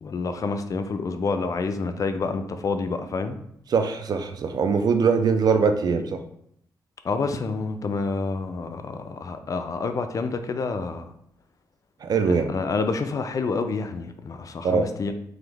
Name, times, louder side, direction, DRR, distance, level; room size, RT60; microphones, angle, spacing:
voice 1, 0.0-3.4 7.0-11.1 12.3-15.1, left 4 dB, 50° left, 8 dB, 0.4 m, -28 dB
voice 2, 3.7-6.2 12.0-12.5 14.6-14.9, right 5 dB, 60° right, 8 dB, 0.5 m, -22 dB
3.8 x 2.9 x 3.3 m, 0.71 s
cardioid pair, 85°, 8 cm